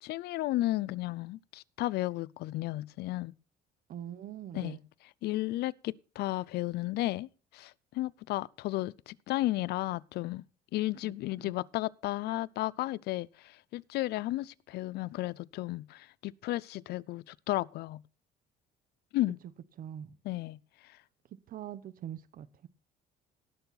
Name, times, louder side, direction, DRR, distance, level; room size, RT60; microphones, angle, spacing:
voice 1, 0.0-3.3 4.5-4.8 5.2-7.3 7.5-10.4 10.7-18.0 19.1-19.4 20.2-20.6, left 17 dB, 75° left, 0.5 m, -33 dB
voice 2, 3.9-4.8 11.0-11.1 11.4-11.5 19.8-20.2 21.5-22.7, right 10 dB, 55° right, 0.9 m, -43 dB
18.0 x 6.9 x 4.1 m
cardioid pair, 110°, 17 cm